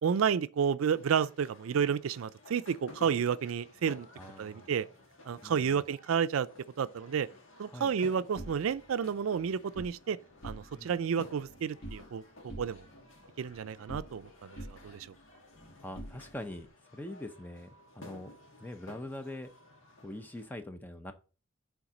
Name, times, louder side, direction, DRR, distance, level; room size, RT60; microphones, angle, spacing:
voice 1, 0.0-4.1 4.4-4.9 5.3-6.5 6.8-7.3 7.6-10.2 10.4-12.9 13.4-15.1, right 7 dB, 90° right, 0.4 m, -31 dB
sound 1, 0.9-20.5, left 2 dB, 75° left, 1.7 m, -54 dB
voice 2, 4.1-4.7 5.4-5.8 7.7-7.9 10.7-10.9 15.8-16.7 16.9-18.3 18.6-19.5 20.0-21.1, left 1 dB, 10° left, 0.6 m, -43 dB
sound 2, 8.3-10.0 10.3-11.0 11.2-12.2 12.5-14.3 14.6-16.7, right 1 dB, 50° left, 1.7 m, -47 dB
7.1 x 3.6 x 5.0 m
head